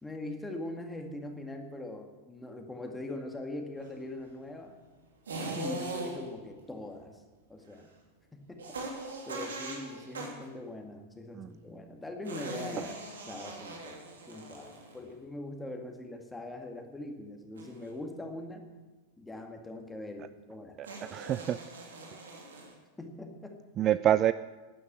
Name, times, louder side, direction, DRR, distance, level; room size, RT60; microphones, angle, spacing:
voice 1, 0.0-4.8 5.4-7.2 7.5-7.9 8.3-9.0 9.3-13.0 13.3-14.0 14.3-18.7 19.2-20.8 23.0-23.6, left 1 dB, 10° left, 4 dB, 2.0 m, -42 dB
sound 1, 5.3-6.4 8.6-10.5 12.2-15.1 17.6-17.9 20.8-22.7, right 2 dB, 70° right, 2.7 m, -40 dB
voice 2, 20.8-21.6 23.8-24.3, right 11 dB, 30° right, 15 dB, 0.4 m, -27 dB
12.0 x 10.0 x 8.6 m, 1.2 s
figure-of-eight pair, 90°, 0 cm